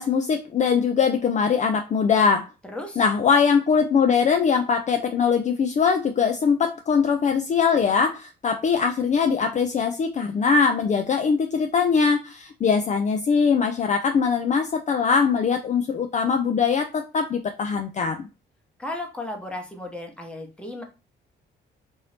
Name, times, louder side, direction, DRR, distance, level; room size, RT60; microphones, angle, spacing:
voice 1, 0.0-2.5 3.0-18.3, left 6 dB, 35° left, 5 dB, 0.4 m, -22 dB
voice 2, 2.7-3.0 18.8-20.8, left 1 dB, 5° left, 1 dB, 0.9 m, -34 dB
3.0 x 2.6 x 3.2 m, 0.29 s
cardioid pair, 90°, 20 cm